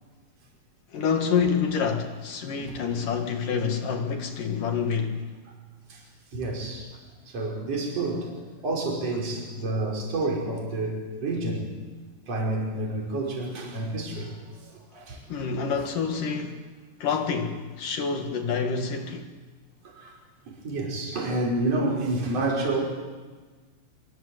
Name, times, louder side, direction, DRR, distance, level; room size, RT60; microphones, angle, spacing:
voice 1, 0.9-5.3 15.3-16.7 17.0-19.3, left 6 dB, 60° left, 2.8 m, -27 dB
voice 2, 6.3-6.9 7.3-11.7 12.3-14.4 14.6-15.2 19.8-20.1 20.5-22.8, right 2 dB, 35° right, 6.1 m, -29 dB
25.0 x 24.5 x 8.0 m
omnidirectional pair, 5.1 m